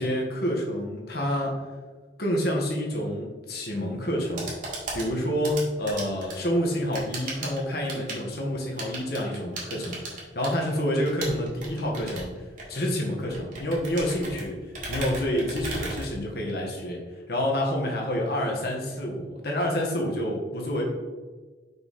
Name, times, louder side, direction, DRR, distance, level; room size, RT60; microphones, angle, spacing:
voice 1, 0.0-1.6 2.2-4.5 4.9-12.3 12.7-14.6 14.9-20.9, equal, 60° left, -1 dB, 1.5 m, -28 dB
sound 1, 4.1-16.7, right 2 dB, 45° right, 1.9 m, -38 dB
5.6 x 5.5 x 4.2 m, 1.4 s
head